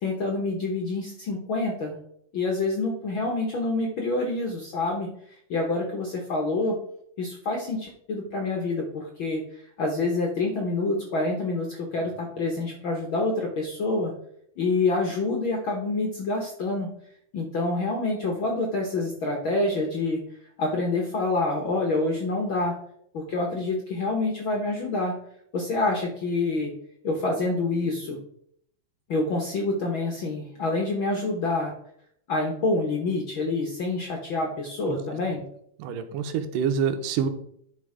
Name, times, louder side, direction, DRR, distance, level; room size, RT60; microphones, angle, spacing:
voice 1, 0.0-2.0 2.3-6.8 7.2-14.1 14.6-16.9 17.3-20.2 20.6-22.7 23.1-25.1 25.5-26.7 27.0-28.2 29.1-31.7 32.3-35.4, left 2 dB, 65° left, 1 dB, 1.2 m, -27 dB
voice 2, 35.8-37.3, right 7 dB, 85° right, 9 dB, 2.4 m, -26 dB
11.0 x 4.3 x 4.9 m, 0.70 s
omnidirectional pair, 3.7 m